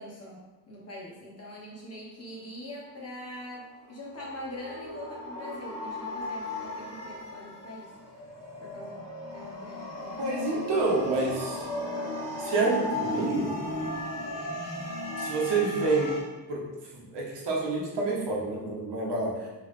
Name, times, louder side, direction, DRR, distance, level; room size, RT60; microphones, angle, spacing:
voice 1, 0.0-7.9 8.6-10.4 10.8-10.9, left 1 dB, 35° left, -4 dB, 1.0 m, -43 dB
sound 1, 3.9-16.2, left 1 dB, 85° left, 1.3 m, -36 dB
voice 2, 10.2-11.7 12.4-13.5 15.2-16.1 16.5-16.6 16.9-19.5, right 3 dB, 70° right, -3 dB, 1.2 m, -28 dB
3.9 x 3.3 x 3.2 m, 1.1 s
wide cardioid pair, 170°, 43 cm